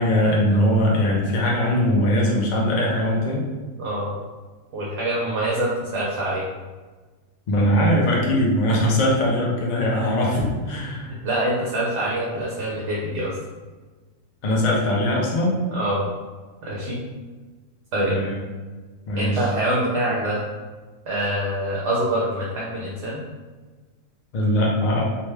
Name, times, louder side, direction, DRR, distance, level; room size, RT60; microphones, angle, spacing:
voice 1, 0.0-3.5 7.5-11.1 14.4-15.6 18.0-18.4 19.1-19.5 24.3-25.0, left 1 dB, 60° left, -3 dB, 0.4 m, -21 dB
voice 2, 3.8-4.1 4.7-6.4 11.1-13.3 15.7-16.1 16.6-17.0 17.9-18.2 19.1-20.4 21.1-23.2, right 1 dB, 65° right, -5 dB, 0.9 m, -25 dB
2.6 x 2.2 x 3.1 m, 1.3 s
omnidirectional pair, 1.4 m